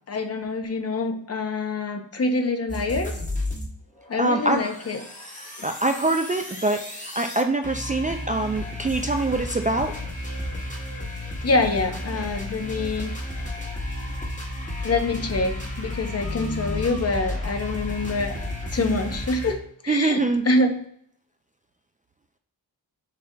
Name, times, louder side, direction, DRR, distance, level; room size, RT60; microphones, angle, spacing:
voice 1, 0.1-3.1 4.1-5.0 11.4-13.1 14.8-18.3 18.7-20.8, left 2 dB, 40° left, 6 dB, 0.7 m, -25 dB
sound 1, 2.7-3.7 4.0-19.5, left 1 dB, 20° left, 1.2 m, -32 dB
voice 2, 4.2-4.7 5.6-10.0 18.8-19.0 19.9-20.5, right 2 dB, 20° right, 5 dB, 0.3 m, -24 dB
6.5 x 3.6 x 2.2 m, 0.68 s
wide cardioid pair, 95°, 38 cm